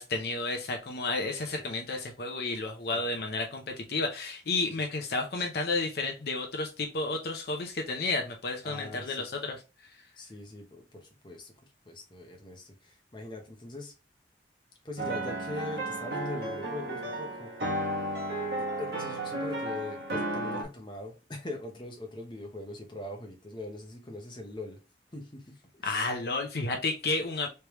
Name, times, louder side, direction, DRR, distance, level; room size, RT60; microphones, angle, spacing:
voice 1, 0.0-9.6 25.8-27.5, left 3 dB, 60° left, 0.6 m, -31 dB
voice 2, 8.6-9.3 10.2-11.5 11.9-13.9 14.8-17.5 18.6-24.8 25.1-26.1, left 2 dB, 25° left, 0.8 m, -41 dB
sound 1, 15.0-20.6, right 1 dB, 65° right, 1.2 m, -33 dB
3.3 x 3.2 x 3.0 m
head